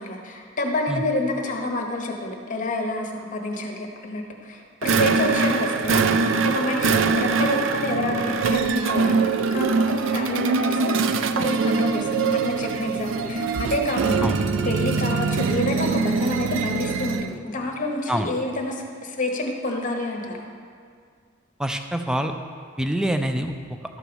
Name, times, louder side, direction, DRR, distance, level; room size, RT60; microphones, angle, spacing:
voice 1, 0.0-11.0 11.3-20.5, left 2 dB, 45° left, 1 dB, 1.1 m, -28 dB
sound 1, 4.8-17.4, right 4 dB, 75° right, 0.4 m, -23 dB
voice 2, 21.6-22.3 22.8-23.5, right 1 dB, 5° right, 6 dB, 0.4 m, -25 dB
12.0 x 4.6 x 6.9 m, 2.1 s
head